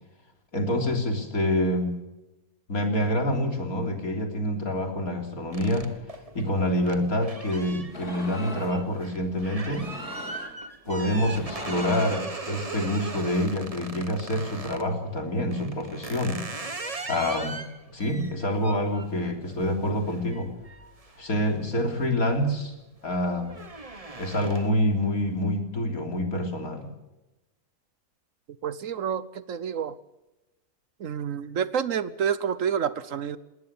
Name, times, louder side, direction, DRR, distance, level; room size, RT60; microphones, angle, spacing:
voice 1, 0.5-1.9 2.7-5.9 6.4-9.9 10.9-16.4 17.1-17.6 17.9-20.5 21.2-22.7 23.0-23.6 24.2-26.9, left 1 dB, 70° left, 4 dB, 3.8 m, -27 dB
sound 1, 5.5-14.9 15.5-21.9 22.3-22.7 23.0-24.9, right 3 dB, 25° right, 1.6 m, -39 dB
sound 2, 7.9-8.8 9.7-10.6 11.2-12.3, left 2 dB, 85° left, 4.4 m, -39 dB
voice 2, 28.6-30.0 31.0-33.4, right 8 dB, 60° right, 16 dB, 1.2 m, -28 dB
19.5 x 19.0 x 7.0 m, 1.0 s
omnidirectional pair, 1.6 m